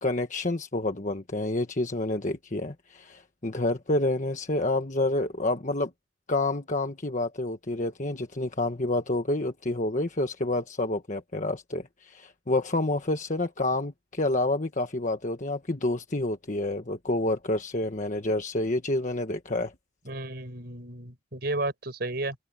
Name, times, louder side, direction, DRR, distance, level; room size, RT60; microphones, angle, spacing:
voice 1, 0.0-5.9 6.3-19.7, left 2 dB, 40° left, 1.3 m, -28 dB
voice 2, 20.1-22.4, right 2 dB, 55° right, 5.3 m, -33 dB
head